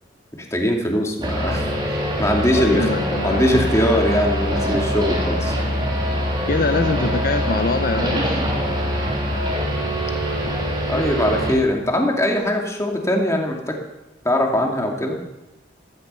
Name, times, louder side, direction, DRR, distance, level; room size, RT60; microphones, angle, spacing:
voice 1, 0.4-1.7 2.2-2.9 3.2-5.6 10.9-13.8 14.2-15.2, left 1 dB, 15° left, 1 dB, 2.4 m, -21 dB
sound 1, 1.2-11.5, equal, 25° right, 3.4 m, -23 dB
voice 2, 2.5-3.6 6.5-8.4, left 3 dB, 50° left, 8 dB, 0.6 m, -23 dB
16.0 x 15.0 x 5.5 m, 0.98 s
head